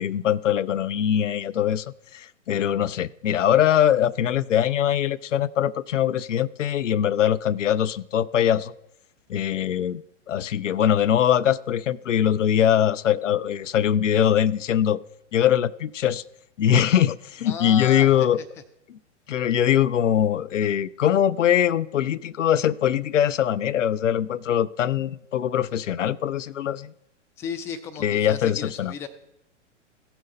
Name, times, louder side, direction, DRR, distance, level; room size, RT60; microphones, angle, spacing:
voice 1, 0.0-1.8 2.1-8.7 9.3-10.0 10.3-15.0 15.3-16.2 16.6-18.4 18.9-19.0 19.3-26.9 28.0-28.9, left 10 dB, 80° left, 0.5 m, -22 dB
voice 2, 17.5-18.5 27.4-29.1, left 7 dB, 10° left, 0.3 m, -34 dB
15.5 x 5.8 x 5.4 m
figure-of-eight pair, 105°, 36 cm